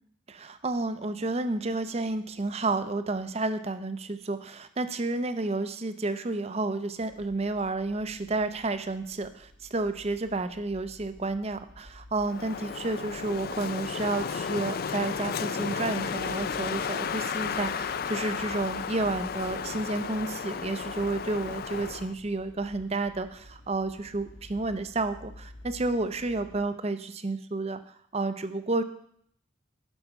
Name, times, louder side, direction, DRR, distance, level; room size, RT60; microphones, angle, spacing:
voice 1, 0.3-28.8, right 2 dB, 30° right, 11 dB, 0.6 m, -31 dB
sound 1, 7.0-26.7, left 1 dB, 70° left, 1.7 m, -52 dB
Wind, 12.2-22.1, left 6 dB, 50° left, 0.4 m, -33 dB
11.0 x 5.6 x 5.8 m, 0.67 s
head